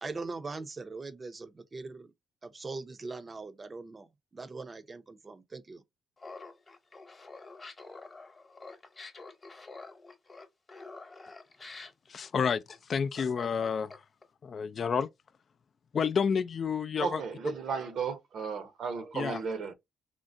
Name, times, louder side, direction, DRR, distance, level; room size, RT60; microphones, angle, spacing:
voice 1, 0.0-2.1 2.4-4.1 4.3-5.8, right 3 dB, 30° right, 0.5 m, -41 dB
Laughter, 6.2-14.2, left 3 dB, 25° left, 1.0 m, -47 dB
voice 2, 12.1-12.6 12.9-13.9 14.4-15.1 15.9-17.2 19.1-19.4, left 6 dB, 45° left, 0.3 m, -29 dB
voice 3, 17.0-19.7, right 5 dB, 65° right, 0.8 m, -34 dB
3.7 x 2.1 x 2.5 m
cardioid pair, 105°, 0 cm